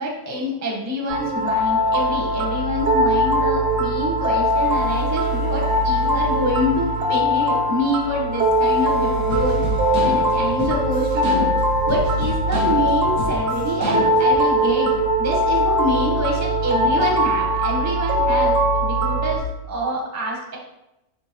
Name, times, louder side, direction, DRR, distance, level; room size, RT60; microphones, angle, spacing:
voice 1, 0.0-9.6 10.0-11.5 11.9-20.6, equal, 15° right, -1 dB, 0.6 m, -26 dB
sound 1, 1.1-19.4, equal, 70° right, 1.0 m, -21 dB
sound 2, 9.3-14.4, left 2 dB, 75° left, 1.8 m, -29 dB
4.5 x 4.2 x 2.9 m, 0.90 s
omnidirectional pair, 1.5 m